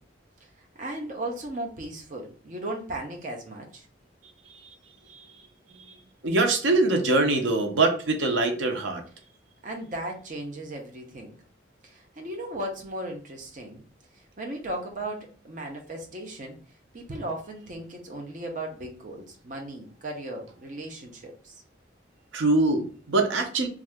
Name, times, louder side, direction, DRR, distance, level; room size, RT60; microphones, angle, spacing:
voice 1, 0.8-3.9 9.6-11.3 11.8-13.8 14.4-16.6 16.9-21.5, right 1 dB, 40° right, 1 dB, 0.6 m, -36 dB
voice 2, 6.2-9.0 22.3-23.7, right 2 dB, 85° right, 4 dB, 0.6 m, -23 dB
2.7 x 2.4 x 3.3 m, 0.41 s
head